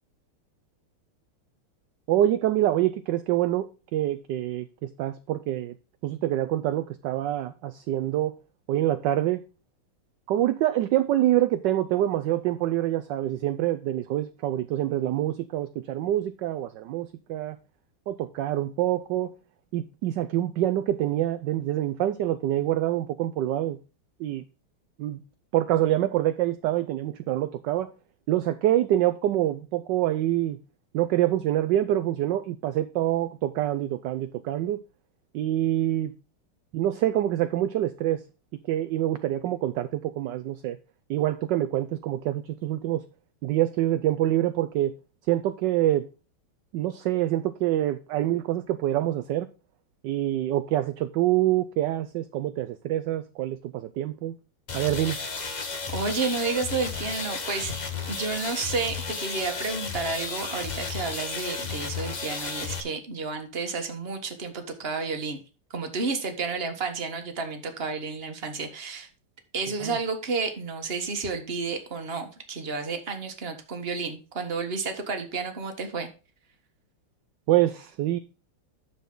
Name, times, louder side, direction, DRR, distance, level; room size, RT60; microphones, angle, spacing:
voice 1, 2.1-5.7 6.0-8.3 8.7-9.4 10.3-17.6 18.1-19.3 19.7-23.8 24.2-24.4 25.0-25.2 25.5-27.9 28.3-30.6 30.9-34.8 35.3-36.1 36.7-38.2 38.7-40.8 41.1-43.0 43.4-44.9 45.3-46.1 46.7-49.5 50.0-54.4 54.7-55.2 69.8-70.0 77.5-78.2, right 13 dB, 75° right, 1.0 m, -26 dB
sound 1, 54.7-62.8, left 5 dB, 40° left, 0.6 m, -33 dB
voice 2, 55.9-57.7 58.1-65.4 65.7-69.1 69.5-76.1, right 4 dB, 30° right, 1.4 m, -31 dB
10.0 x 6.9 x 3.8 m
omnidirectional pair, 2.3 m